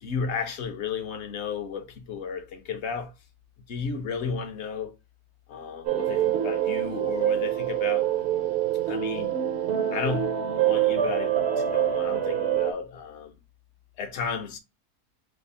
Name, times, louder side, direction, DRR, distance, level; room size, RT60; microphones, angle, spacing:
voice 1, 0.0-3.1 3.7-4.9 5.5-8.1 8.9-9.3 9.9-10.3 10.6-13.4 14.0-14.6, left 6 dB, 60° left, 0.8 m, -33 dB
sound 1, 5.8-12.7, right 10 dB, 65° right, 0.7 m, -25 dB
3.4 x 2.0 x 4.0 m
omnidirectional pair, 1.7 m